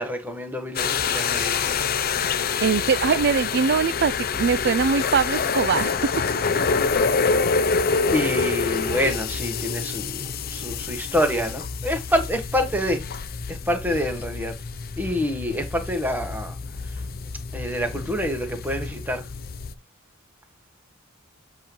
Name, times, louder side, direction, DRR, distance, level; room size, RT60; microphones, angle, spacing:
voice 1, 0.0-1.8 8.1-13.0 13.5-14.5 15.0-16.5 16.9-17.0 17.5-19.3, equal, 10° right, 1.3 m, -27 dB
sound 1, 0.8-19.8, left 5 dB, 45° left, 0.6 m, -27 dB
voice 2, 2.6-6.1, right 6 dB, 50° right, 0.4 m, -22 dB
7.8 x 3.0 x 5.3 m
head